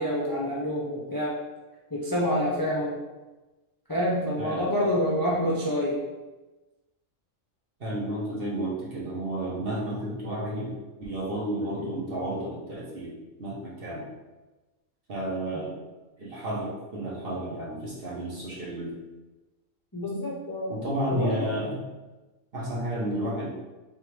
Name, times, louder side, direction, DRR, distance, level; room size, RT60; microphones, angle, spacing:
voice 1, 0.0-1.4 1.9-3.0 3.9-6.0 19.9-20.7 21.1-21.5, equal, 25° left, -6 dB, 0.4 m, -27 dB
voice 2, 4.4-4.7 7.8-13.1 13.4-14.1 15.1-15.7 16.2-18.9 20.7-21.8 22.5-23.5, right 1 dB, 45° right, -6 dB, 1.3 m, -31 dB
3.6 x 3.5 x 3.3 m, 1.1 s
omnidirectional pair, 1.4 m